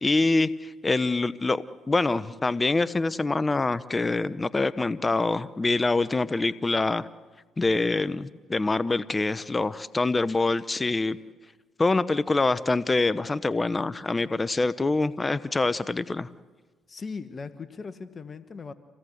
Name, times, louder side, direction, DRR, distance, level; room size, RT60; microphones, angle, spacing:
voice 1, 0.0-7.1 7.6-11.2 11.8-16.3, left 3 dB, 25° left, 15 dB, 0.7 m, -25 dB
voice 2, 16.9-18.7, left 4 dB, 40° left, 11 dB, 1.4 m, -38 dB
27.5 x 17.5 x 8.0 m, 1.4 s
supercardioid pair, 65°, 0 cm